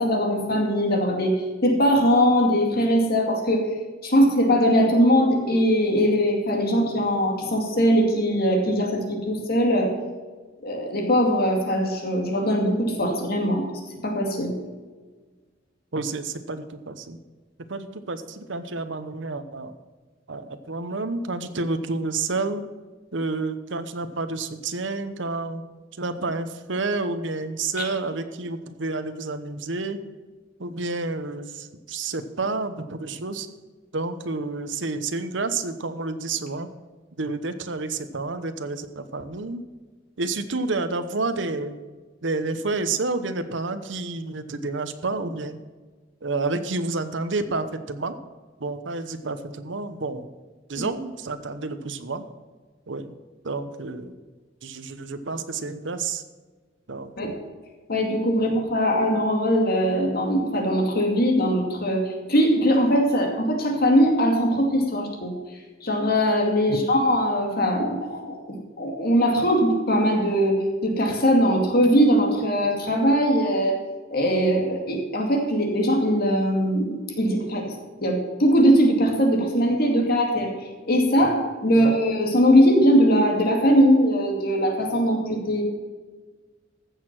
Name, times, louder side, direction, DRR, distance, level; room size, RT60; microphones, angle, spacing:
voice 1, 0.0-1.3 1.6-3.7 4.0-9.9 10.6-13.7 14.0-14.5 50.8-50.9 57.2-57.3 57.9-62.0 62.3-65.3 65.8-73.8 74.1-77.7 78.0-80.5 80.9-85.6, equal, 55° left, 1 dB, 2.3 m, -21 dB
voice 2, 15.9-17.2 17.7-19.7 20.3-22.6 23.1-25.6 26.0-30.0 30.6-33.5 33.9-36.7 37.2-39.6 40.2-41.8 42.2-45.6 46.2-48.2 48.6-50.3 50.7-52.2 52.9-53.1 53.4-54.1 54.6-56.2 56.9-57.4 58.4-58.6 66.7-66.8 81.8-82.0, right 3 dB, 80° right, 9 dB, 1.0 m, -29 dB
15.0 x 6.6 x 6.0 m, 1.4 s
head